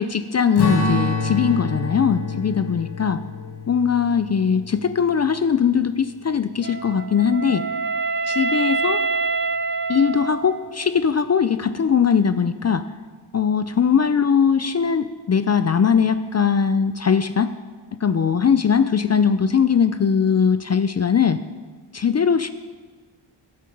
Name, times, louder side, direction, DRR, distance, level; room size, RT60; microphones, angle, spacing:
voice 1, 0.0-3.2 3.7-7.6 8.3-9.0 9.9-12.8 13.3-17.5 18.0-21.4 21.9-22.5, left 7 dB, 40° left, 12 dB, 0.4 m, -20 dB
Strum, 0.6-5.2, left 2 dB, 60° left, 2.2 m, -27 dB
Wind instrument woodwind instrument, 6.6-10.8, right 4 dB, 30° right, 0.4 m, -25 dB
21.0 x 8.6 x 5.2 m, 1.4 s
wide cardioid pair, 180°, 44 cm